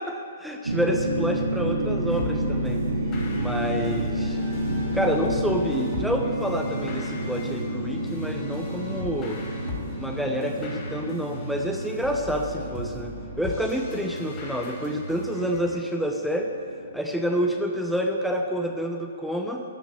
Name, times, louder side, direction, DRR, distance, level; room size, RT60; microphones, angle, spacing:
voice 1, 0.0-2.8 3.4-4.4 4.9-9.4 10.0-16.5 16.9-19.6, equal, ahead, 1 dB, 0.7 m, -28 dB
sound 1, 0.7-17.8, right 1 dB, 90° right, 1.4 m, -30 dB
sound 2, 2.1-15.6, left 1 dB, 30° left, 3.5 m, -37 dB
14.0 x 6.2 x 6.9 m, 2.3 s
hypercardioid pair, 130°, 0 cm